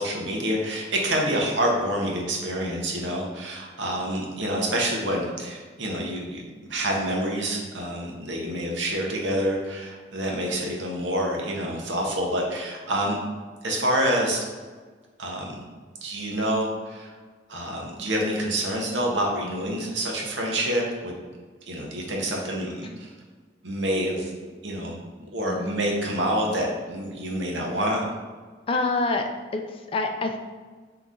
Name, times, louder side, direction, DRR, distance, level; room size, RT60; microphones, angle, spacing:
voice 1, 0.0-6.4 6.7-13.2 13.6-14.5 15.2-15.5 16.0-17.2 17.5-21.2 21.7-23.1 23.6-24.3 24.6-28.0, right 1 dB, 75° right, -1 dB, 0.8 m, -27 dB
voice 2, 28.7-29.2 29.5-30.4, left 3 dB, 30° left, 4 dB, 0.3 m, -26 dB
3.7 x 2.9 x 3.6 m, 1.4 s
head